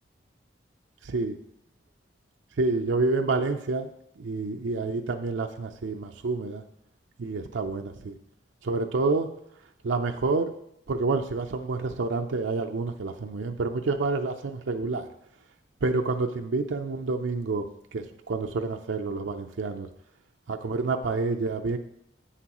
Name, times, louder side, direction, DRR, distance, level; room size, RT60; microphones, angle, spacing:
voice 1, 1.0-1.4 2.6-3.9 4.2-6.6 7.2-8.1 8.6-9.3 9.8-10.5 10.9-15.1 15.8-17.7 17.9-19.9 20.5-21.8, right 3 dB, 90° right, 5 dB, 0.5 m, -28 dB
9.9 x 7.7 x 3.0 m, 0.74 s
head